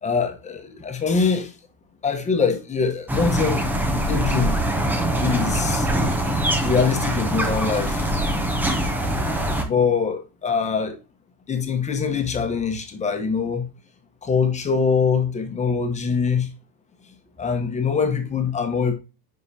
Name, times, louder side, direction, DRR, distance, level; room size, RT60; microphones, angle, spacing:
voice 1, 0.0-1.5 2.0-3.6 4.1-4.6 5.2-5.9 6.6-8.0 9.6-11.0 11.5-13.6 14.2-16.5 17.4-18.9, left 5 dB, 15° left, 0.9 m, -23 dB
sound 1, 3.1-9.6, right 1 dB, 5° right, 0.5 m, -23 dB
9.9 x 3.7 x 2.7 m
supercardioid pair, 135°, 46 cm